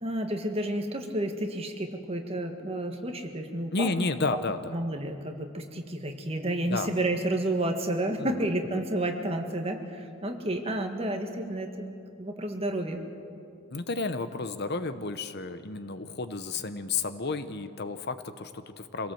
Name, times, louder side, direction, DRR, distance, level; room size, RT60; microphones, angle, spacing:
voice 1, 0.0-3.9 4.7-11.9 12.2-13.0, right 1 dB, 25° right, 4 dB, 1.7 m, -31 dB
voice 2, 3.7-4.7 6.7-6.9 8.2-8.8 13.7-19.1, left 3 dB, 45° left, 11 dB, 0.8 m, -32 dB
26.0 x 18.0 x 7.8 m, 2.6 s
head